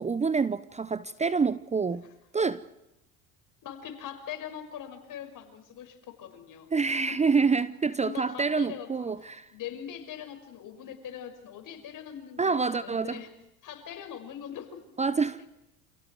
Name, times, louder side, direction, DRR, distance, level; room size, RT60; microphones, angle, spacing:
voice 1, 0.0-2.0 2.3-2.6 6.7-9.5 12.4-13.2 15.0-15.4, right 5 dB, 15° right, 0.8 m, -27 dB
voice 2, 3.6-6.7 7.1-7.2 8.0-13.3 13.6-15.1, left 9 dB, 50° left, 6.1 m, -42 dB
29.0 x 28.5 x 4.7 m
hypercardioid pair, 70°, 40 cm